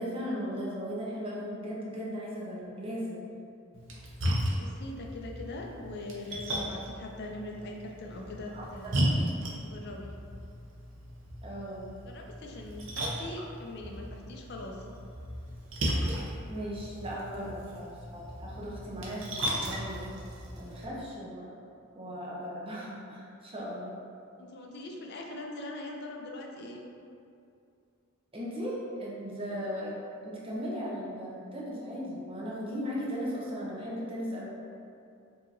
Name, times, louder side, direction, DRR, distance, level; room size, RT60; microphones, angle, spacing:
voice 1, 0.0-3.3 8.5-8.6 9.1-9.2 11.4-11.9 16.5-21.5 21.9-24.0 28.3-29.9 30.2-34.5, equal, 25° right, -5 dB, 0.6 m, -37 dB
Splash splatter, 3.7-20.8, equal, 60° right, 0.7 m, -36 dB
voice 2, 4.4-9.2 9.6-10.1 12.1-14.9 24.4-26.8 29.5-29.7, left 2 dB, 50° left, 1 dB, 0.4 m, -42 dB
4.8 x 2.8 x 2.6 m, 2.5 s
head